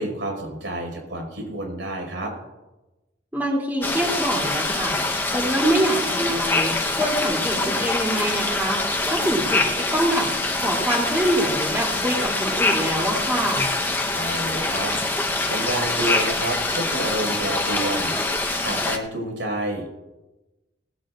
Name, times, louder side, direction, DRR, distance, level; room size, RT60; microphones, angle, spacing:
voice 1, 0.0-2.3 14.1-18.1 18.6-19.9, right 1 dB, 90° right, 1 dB, 5.6 m, -29 dB
voice 2, 3.3-5.0 5.3-10.3 10.6-13.7, right 1 dB, 10° right, -1 dB, 3.1 m, -25 dB
sound 1, 3.8-19.0, left 2 dB, 10° left, 1.0 m, -24 dB
19.5 x 16.5 x 2.6 m, 1.1 s
head